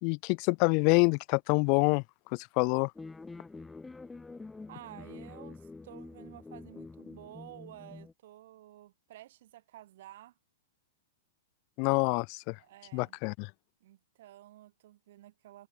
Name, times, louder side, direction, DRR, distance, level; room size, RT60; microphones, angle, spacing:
voice 1, 0.0-2.0 2.3-2.9 11.8-12.6 12.9-13.5, left 37 dB, 45° left, 0.6 m, -26 dB
sound 1, 3.0-8.1, left 3 dB, 10° left, 2.0 m, -47 dB
voice 2, 4.7-10.3 12.6-13.2 13.8-15.7, right 14 dB, 65° right, 6.6 m, -52 dB
hypercardioid pair, 125°, 0 cm